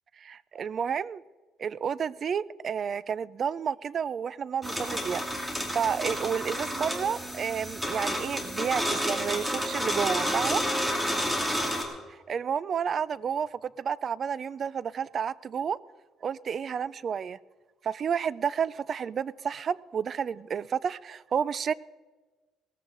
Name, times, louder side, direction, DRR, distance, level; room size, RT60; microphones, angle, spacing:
voice 1, 0.2-1.2 1.6-5.4 5.7-10.6 12.3-15.8 16.2-17.4 17.8-21.7, right 7 dB, 40° right, 0.4 m, -31 dB
sound 1, 4.6-11.8, equal, 5° right, 2.3 m, -30 dB
18.0 x 14.0 x 3.9 m
cardioid pair, 135°, 0 cm